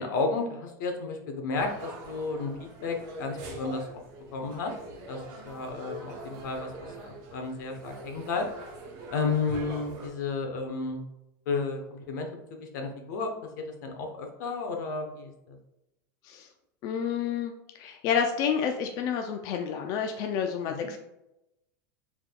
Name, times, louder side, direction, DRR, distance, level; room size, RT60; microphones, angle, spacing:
voice 1, 0.0-3.9 4.3-4.7 5.1-8.5 9.1-11.0 11.5-13.5 13.8-15.6 20.7-20.9, left 4 dB, 75° left, 4 dB, 0.9 m, -32 dB
sound 1, 1.5-10.1, right 2 dB, 45° right, 1.1 m, -43 dB
voice 2, 16.8-17.5 17.8-21.0, left 7 dB, 40° left, 4 dB, 0.4 m, -29 dB
4.8 x 3.6 x 2.3 m, 0.90 s
supercardioid pair, 155°, 10 cm